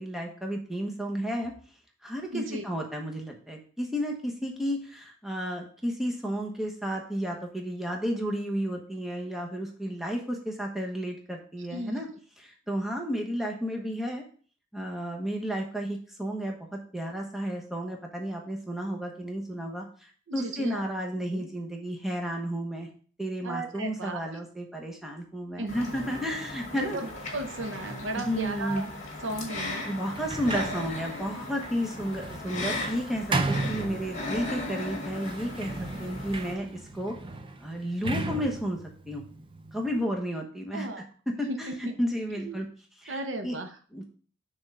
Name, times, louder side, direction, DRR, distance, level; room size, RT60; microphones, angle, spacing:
voice 1, 0.0-1.5 2.0-12.1 12.4-14.2 14.7-19.9 20.3-22.9 23.2-27.0 28.2-28.8 29.9-37.1 37.6-38.8 39.1-39.2 39.7-42.7 43.0-43.6 43.9-44.1, equal, ahead, 0 dB, 1.0 m, -32 dB
voice 2, 2.3-2.6 11.7-12.0 20.3-20.8 21.3-21.5 23.4-24.2 25.6-25.9 26.7-28.9 29.2-29.9 40.7-41.1 41.5-41.7 42.4-42.6 43.1-43.8, right 2 dB, 70° right, 6 dB, 0.9 m, -35 dB
sound 1, 25.7-36.5, left 2 dB, 35° left, 1.8 m, -37 dB
Sliding door, 30.0-34.5 35.2-40.0, right 3 dB, 25° right, 0.5 m, -35 dB
6.1 x 3.7 x 5.5 m, 0.43 s
head